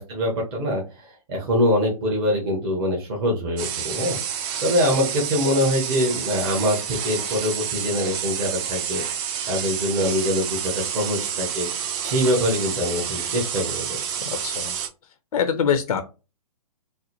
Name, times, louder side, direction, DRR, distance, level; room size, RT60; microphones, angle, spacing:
voice 1, 0.0-4.2 4.6-9.0 9.5-11.7 12.0-14.0, equal, 40° right, -2 dB, 1.2 m, -24 dB
sound 1, 3.6-14.9, right 8 dB, 25° right, 0.4 m, -29 dB
voice 2, 14.4-14.7 15.3-16.0, left 7 dB, 70° left, 9 dB, 0.5 m, -23 dB
3.9 x 2.0 x 3.0 m, 0.31 s
figure-of-eight pair, 125°, 20 cm